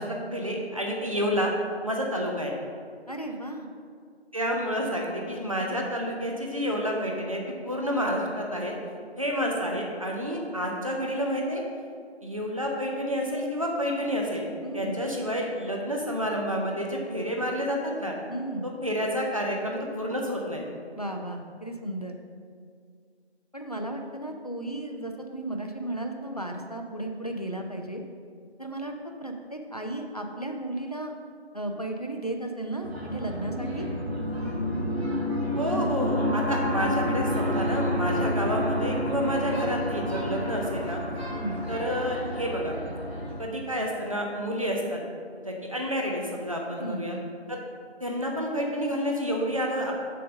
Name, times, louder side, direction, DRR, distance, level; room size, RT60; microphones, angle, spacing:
voice 1, 0.0-1.5 1.8-2.5 4.3-8.7 9.2-11.6 12.2-14.4 14.7-18.1 18.6-20.6 35.6-41.0 41.7-42.8 43.4-45.0 45.4-47.2 47.5-47.6 48.0-49.9, equal, 30° right, -1 dB, 0.7 m, -29 dB
voice 2, 3.1-3.7 14.6-15.0 18.3-18.7 21.0-22.2 23.5-28.0 28.6-28.9 29.2-31.1 31.5-33.9 41.3-41.6 46.8-47.3, right 1 dB, 35° left, 3 dB, 0.5 m, -34 dB
sound 1, 32.8-43.4, equal, 70° right, 1.9 m, -29 dB
6.7 x 3.8 x 6.4 m, 2.1 s
figure-of-eight pair, 175°, 33 cm